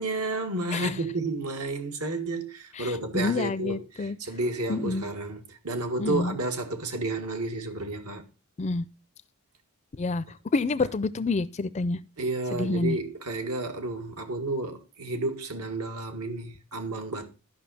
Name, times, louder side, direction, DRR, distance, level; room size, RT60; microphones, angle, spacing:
voice 1, 0.0-8.2 12.2-17.3, right 2 dB, 85° right, 1.8 m, -31 dB
voice 2, 2.7-4.2 4.7-5.1 6.0-6.3 8.6-8.9 10.0-10.2 10.5-12.0 12.5-13.0, left 3 dB, 30° left, 0.4 m, -28 dB
12.0 x 5.8 x 4.2 m
head